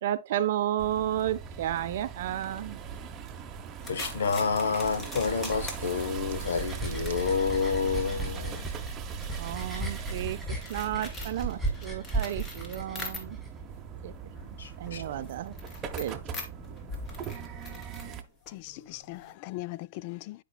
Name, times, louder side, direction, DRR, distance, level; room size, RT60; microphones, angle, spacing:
voice 1, 0.0-2.8 9.4-13.4 14.0-14.1 14.8-15.5 15.9-16.2, right 12 dB, 60° right, 0.5 m, -32 dB
sound 1, 0.8-18.2, right 6 dB, 25° right, 1.0 m, -40 dB
sound 2, 3.8-13.6 13.9-19.3, left 2 dB, 25° left, 2.3 m, -44 dB
voice 2, 3.9-8.7 14.6-15.0, left 5 dB, 75° left, 1.2 m, -29 dB
sound 3, 4.8-13.5, right 2 dB, ahead, 4.8 m, -36 dB
voice 3, 18.5-20.4, left 19 dB, 45° left, 0.3 m, -39 dB
10.5 x 5.1 x 2.3 m
hypercardioid pair, 125°, 0 cm